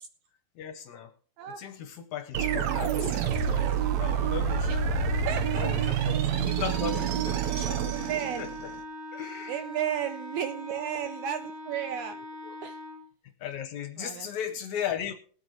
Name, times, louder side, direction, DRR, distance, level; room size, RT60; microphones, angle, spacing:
voice 1, 0.6-1.1 1.6-4.9 5.5-8.1 8.4-8.7 9.1-9.6 12.4-12.6 13.4-15.1, left 9 dB, 70° left, 8 dB, 1.9 m, -37 dB
sound 1, 2.3-8.8, right 7 dB, 65° right, 1.9 m, -28 dB
voice 2, 5.3-6.2 7.6-8.5 9.5-12.2 12.6-12.8 14.0-14.3, right 10 dB, 80° right, 8 dB, 1.8 m, -34 dB
Wind instrument woodwind instrument, 6.7-13.0, equal, 45° right, 2.0 m, -41 dB
20.5 x 8.3 x 3.1 m, 0.44 s
omnidirectional pair, 4.0 m